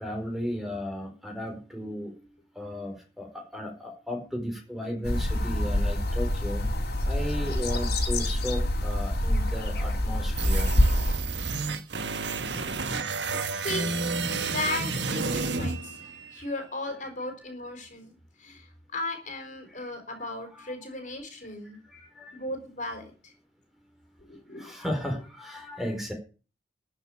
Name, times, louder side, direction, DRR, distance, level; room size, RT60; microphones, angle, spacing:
voice 1, 0.0-2.3 2.5-10.8 12.0-12.2 16.0-16.4 19.7-19.9 20.5-20.7 21.9-22.4 24.5-26.1, left 1 dB, ahead, 3 dB, 4.4 m, -35 dB
sound 1, 5.0-11.2, left 1 dB, 60° left, 3.7 m, -26 dB
sound 2, 10.4-16.4, right 4 dB, 65° right, 1.4 m, -30 dB
voice 2, 13.0-13.4 13.6-13.9 14.5-16.0 16.3-21.8 22.3-23.3 24.2-24.7, left 2 dB, 45° left, 6 dB, 4.3 m, -36 dB
13.5 x 6.8 x 8.6 m, 0.35 s
head